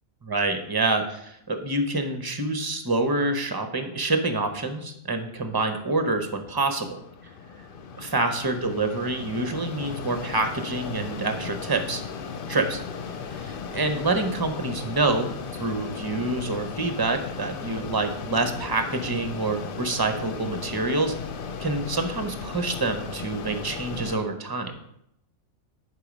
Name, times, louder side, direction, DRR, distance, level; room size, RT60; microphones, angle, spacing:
voice 1, 0.2-7.0 8.0-12.0 12.5-12.8 13.3-15.3 15.6-21.1 21.6-24.7, right 2 dB, 20° right, 7 dB, 0.7 m, -27 dB
Mechanisms, 6.2-24.2, left 5 dB, 55° left, 0.6 m, -36 dB
10.0 x 4.7 x 5.1 m, 0.77 s
omnidirectional pair, 1.5 m